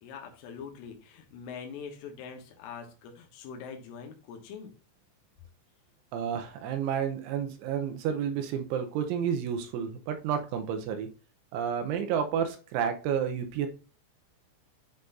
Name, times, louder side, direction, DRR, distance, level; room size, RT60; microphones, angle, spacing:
voice 1, 0.0-4.7, left 6 dB, 80° left, 2 dB, 3.8 m, -43 dB
voice 2, 6.1-11.1 11.5-13.7, right 8 dB, 80° right, 5 dB, 3.1 m, -30 dB
9.9 x 4.0 x 2.6 m, 0.36 s
omnidirectional pair, 5.7 m